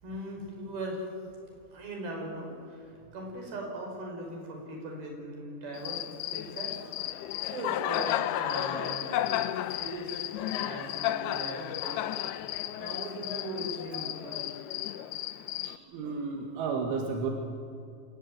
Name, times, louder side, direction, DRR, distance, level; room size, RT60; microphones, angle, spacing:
voice 1, 0.0-1.1 1.7-7.1 7.5-9.4 9.8-10.1 10.5-12.0 12.8-14.5, right 1 dB, 55° right, 1 dB, 7.1 m, -39 dB
Cricket, 5.7-15.8, left 13 dB, 80° left, 2.3 m, -33 dB
voice 2, 15.6-17.3, right 5 dB, 85° right, 2 dB, 4.2 m, -33 dB
26.5 x 19.0 x 9.0 m, 2.5 s
omnidirectional pair, 5.4 m